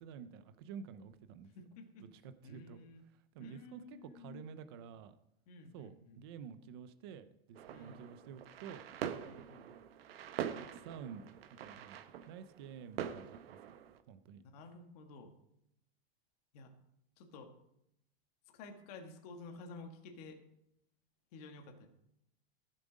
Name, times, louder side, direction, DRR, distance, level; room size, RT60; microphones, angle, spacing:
voice 1, 0.0-1.5 2.0-2.8 3.3-5.2 5.7-8.8 10.5-11.3 11.6-13.8 14.1-14.4, right 7 dB, 25° right, 11 dB, 0.4 m, -50 dB
voice 2, 1.5-2.1 2.4-3.0 3.4-4.4 5.5-6.2 7.7-8.2 9.2-9.6 14.4-15.3 16.5-16.7 17.2-17.5 18.5-20.4 21.3-21.9, left 3 dB, 40° left, 4 dB, 1.6 m, -52 dB
sound 1, 7.6-14.0, right 9 dB, 75° right, 1.1 m, -44 dB
15.0 x 7.5 x 5.0 m, 0.79 s
supercardioid pair, 180°, 30 cm